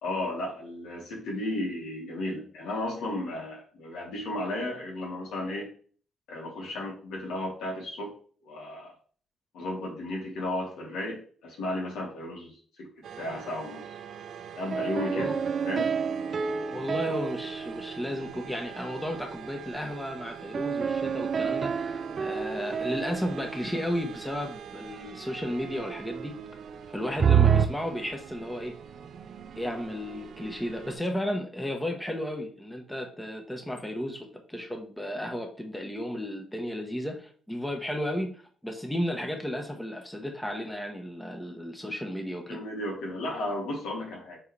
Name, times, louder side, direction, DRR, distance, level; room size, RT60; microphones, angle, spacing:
voice 1, 0.0-5.7 6.3-8.1 8.4-8.9 9.5-12.5 12.8-12.9 13.2-13.8 14.5-15.4 15.7-15.9 42.5-44.4, left 1 dB, 80° left, -2 dB, 2.7 m, -34 dB
sound 1, 13.0-30.9, right 8 dB, 65° right, 0.8 m, -44 dB
sound 2, 14.7-18.5 20.5-24.1 27.2-27.7, right 7 dB, 45° right, 0.5 m, -28 dB
voice 2, 16.7-26.4 26.9-28.7 29.6-42.6, equal, 5° left, 2 dB, 1.3 m, -34 dB
7.7 x 4.1 x 3.4 m, 0.44 s
cardioid pair, 90°, 0 cm